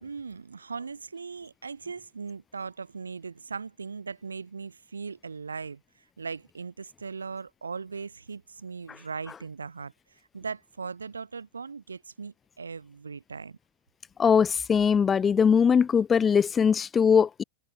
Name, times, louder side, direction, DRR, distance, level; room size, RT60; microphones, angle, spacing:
voice 1, 0.0-5.8 6.2-13.6, right 5 dB, 75° right, 1.0 m, -39 dB
voice 2, 14.2-17.4, left 6 dB, 20° left, 0.3 m, -21 dB
figure-of-eight pair, 90°, 0 cm